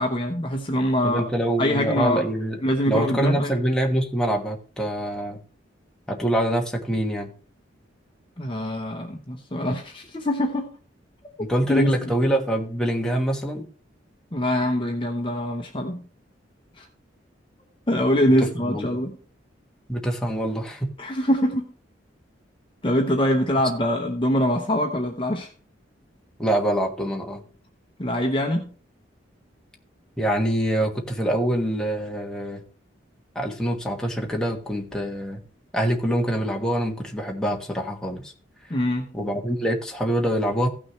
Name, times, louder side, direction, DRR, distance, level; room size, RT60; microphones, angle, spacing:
voice 1, 0.0-1.3 1.6-2.3 2.6-3.5 8.4-10.7 11.7-12.1 14.3-16.0 16.8-16.9 17.9-19.2 21.0-21.7 22.8-25.5 28.0-28.7 38.7-39.0, equal, 25° left, 3 dB, 0.9 m, -24 dB
voice 2, 1.0-2.6 2.8-5.4 6.1-7.3 11.5-13.6 18.4-18.9 19.9-20.9 26.4-27.4 30.2-32.6 33.3-35.4 35.7-38.3 39.1-40.7, right 1 dB, 5° left, 0 dB, 1.3 m, -25 dB
15.5 x 6.1 x 3.1 m, 0.40 s
head